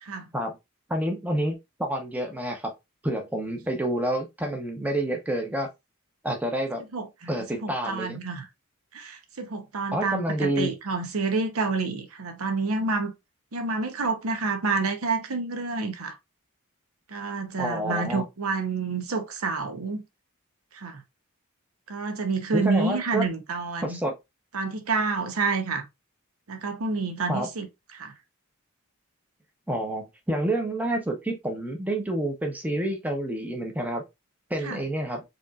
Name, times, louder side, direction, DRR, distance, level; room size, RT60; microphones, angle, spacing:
voice 1, 0.9-2.7 3.0-5.7 6.2-6.8 7.3-8.2 9.9-10.7 17.6-18.2 22.5-23.3 23.8-24.1 27.3-27.5 29.7-34.0 34.5-35.2, right 1 dB, 5° right, 0.7 m, -28 dB
voice 2, 6.9-7.3 7.6-8.5 8.9-13.1 13.5-16.2 17.1-20.0 20.7-21.0 21.9-24.0 24.5-25.9 26.5-27.7 27.9-28.1 34.6-34.8, right 4 dB, 80° right, 0.8 m, -28 dB
5.0 x 3.0 x 2.4 m
head